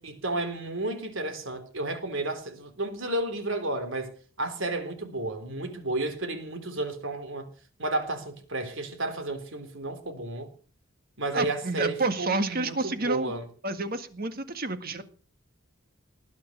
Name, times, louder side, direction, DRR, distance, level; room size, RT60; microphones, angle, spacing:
voice 1, 0.0-7.5 7.8-10.5 11.2-13.5, right 2 dB, 65° right, 3.5 m, -32 dB
voice 2, 11.3-13.3 13.6-15.0, right 3 dB, 45° right, 1.8 m, -29 dB
19.5 x 9.7 x 6.6 m
head